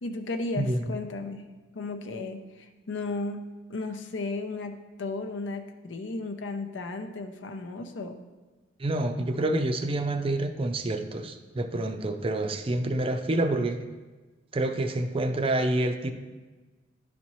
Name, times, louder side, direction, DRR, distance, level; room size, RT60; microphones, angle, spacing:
voice 1, 0.0-1.4 1.7-8.2, left 3 dB, 80° left, 5 dB, 0.6 m, -34 dB
voice 2, 8.8-13.8 14.5-16.1, right 1 dB, 30° right, 8 dB, 0.4 m, -27 dB
11.0 x 4.2 x 3.1 m, 1.3 s
head